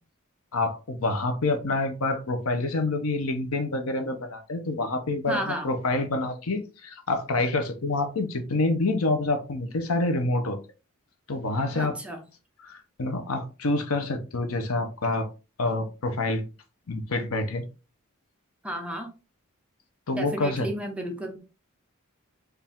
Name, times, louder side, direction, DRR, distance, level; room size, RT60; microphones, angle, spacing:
voice 1, 0.5-10.6 11.3-12.0 12.6-15.3 15.6-16.4 16.9-17.6 20.1-20.7, left 2 dB, 80° left, 7 dB, 0.9 m, -27 dB
voice 2, 5.3-5.7 11.7-12.2 18.6-19.1 20.1-21.4, right 1 dB, 5° right, 2 dB, 0.8 m, -32 dB
4.6 x 2.7 x 3.6 m, 0.32 s
head